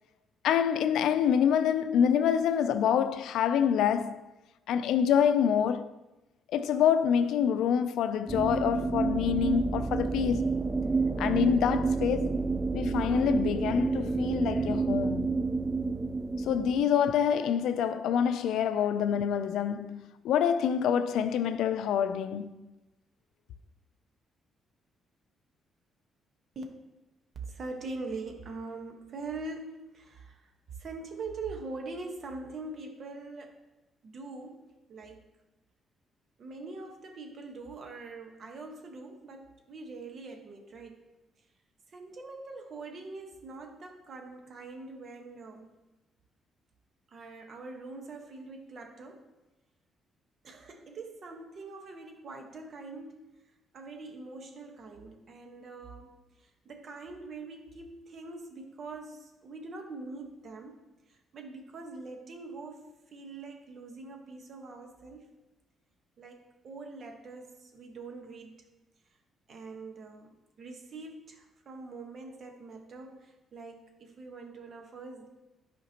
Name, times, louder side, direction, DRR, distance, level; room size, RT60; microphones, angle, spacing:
voice 1, 0.4-4.2 4.7-5.9 6.5-10.5 11.2-12.4 12.7-15.3 16.4-22.6, left 8 dB, 80° left, 0.4 m, -26 dB
sound 1, 8.3-16.8, right 4 dB, 20° right, 0.3 m, -29 dB
voice 2, 27.3-33.6 34.0-35.3 36.4-41.1 41.9-45.7 47.1-49.3 50.4-53.3 53.7-60.8 61.1-65.3 66.2-68.6 69.5-75.3, right 3 dB, 55° right, 1.3 m, -43 dB
11.0 x 5.0 x 2.9 m
cardioid pair, 90°, 0 cm